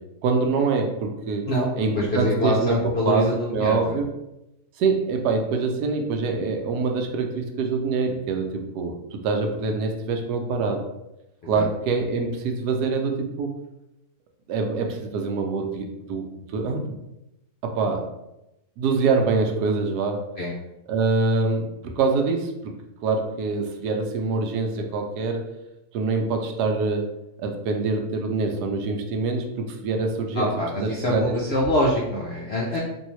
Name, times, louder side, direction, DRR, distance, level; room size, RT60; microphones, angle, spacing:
voice 1, 0.2-1.5 1.8-2.8 3.0-4.1 4.8-10.8 11.5-13.5 14.5-16.2 16.5-17.0 17.6-18.0 18.8-20.3 20.9-21.6 22.0-22.8 23.0-25.5 25.9-27.1 27.4-30.5 30.8-31.4, right 4 dB, 80° right, 3 dB, 1.1 m, -25 dB
voice 2, 1.9-4.0 11.5-11.6 20.4-20.5 30.3-32.8, left 1 dB, 65° left, -3 dB, 0.6 m, -24 dB
3.6 x 2.7 x 3.0 m, 0.90 s
omnidirectional pair, 1.7 m